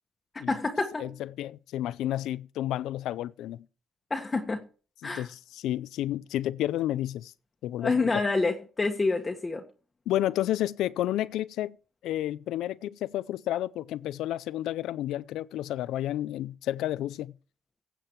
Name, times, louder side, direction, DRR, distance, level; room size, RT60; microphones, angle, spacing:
voice 1, 0.5-1.1 4.1-4.7 5.0-5.3 7.8-9.6, left 3 dB, 25° left, 1.4 m, -27 dB
voice 2, 1.0-3.6 5.0-7.3 7.6-8.1 10.1-11.7 12.0-17.3, left 13 dB, 85° left, 0.5 m, -31 dB
16.0 x 7.6 x 4.6 m
cardioid pair, 90°, 0 cm